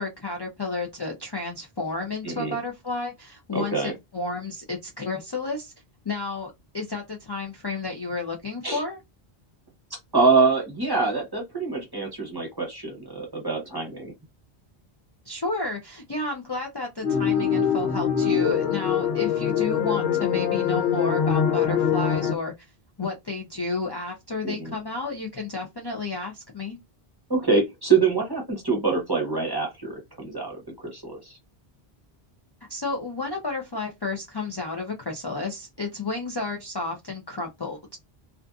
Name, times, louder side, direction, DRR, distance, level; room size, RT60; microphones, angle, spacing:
voice 1, 0.0-5.7 6.0-9.0 15.3-22.5 23.0-26.8 32.7-38.0, left 3 dB, 35° left, 0.4 m, -31 dB
voice 2, 2.2-2.6 3.5-3.9 8.6-8.8 9.9-14.1 24.4-24.7 27.3-31.4, right 4 dB, 25° right, 0.8 m, -25 dB
sound 1, 17.0-22.3, left 8 dB, 80° left, 1.0 m, -23 dB
2.5 x 2.5 x 2.3 m
omnidirectional pair, 1.1 m